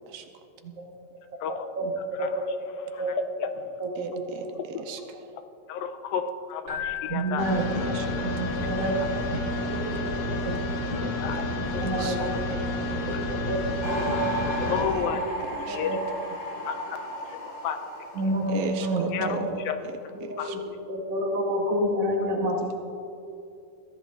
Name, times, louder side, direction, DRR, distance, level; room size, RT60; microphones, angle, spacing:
voice 1, 1.5-1.9 2.2-2.4 3.0-3.1 3.8-4.5 7.1-9.4 9.8-10.5 11.8-12.6 13.1-14.7 15.7-16.0 18.2-19.5 20.2-20.6 20.9-22.7, right 1 dB, 60° right, 0 dB, 1.8 m, -29 dB
voice 2, 4.0-5.0 7.5-8.5 11.0-11.5 11.8-12.2 14.8-15.8 18.5-19.6 20.2-20.6 22.6-22.7, right 6 dB, 80° right, 5 dB, 2.5 m, -37 dB
voice 3, 5.7-7.6 11.2-11.5 11.7-12.4 13.0-13.1 14.6-15.2 15.7-16.0 16.6-18.1 19.1-19.4 19.7-19.8 20.4-20.5, left 7 dB, 85° left, 8 dB, 2.4 m, -32 dB
Keyboard (musical), 6.7-8.5, left 9 dB, 35° right, 2.0 m, -37 dB
sound 1, 7.4-14.8, left 2 dB, 60° left, 2.6 m, -30 dB
sound 2, 13.8-19.6 19.9-20.4, equal, 40° left, 3.2 m, -35 dB
22.0 x 15.0 x 2.5 m, 2.6 s
omnidirectional pair, 4.1 m